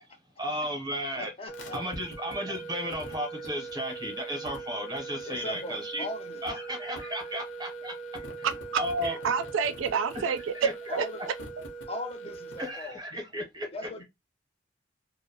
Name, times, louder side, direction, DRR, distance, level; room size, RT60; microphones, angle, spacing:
voice 1, 0.4-1.3 1.7-6.0 6.4-8.2 8.8-9.2 10.5-11.0 12.6-13.7, equal, 20° right, 0.7 m, -34 dB
voice 2, 1.2-1.8 5.3-6.4 10.9-11.2 11.9-13.2 13.7-14.0, left 1 dB, 30° left, 0.5 m, -39 dB
sound 1, 1.5-12.8, right 3 dB, 70° left, 0.7 m, -41 dB
voice 3, 8.4-10.7 11.0-11.1, right 6 dB, 80° right, 0.4 m, -28 dB
2.6 x 2.0 x 2.6 m
head